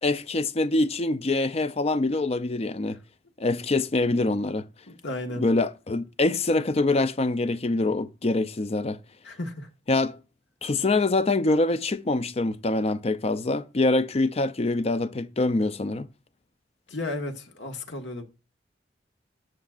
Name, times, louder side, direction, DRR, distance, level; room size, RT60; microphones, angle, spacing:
voice 1, 0.0-3.0 3.4-4.7 5.4-9.0 9.9-10.2 10.6-16.1, left 2 dB, 35° left, 0.5 m, -25 dB
voice 2, 4.9-5.5 9.2-9.7 16.9-18.2, left 2 dB, 75° left, 1.6 m, -34 dB
18.5 x 6.5 x 2.5 m
head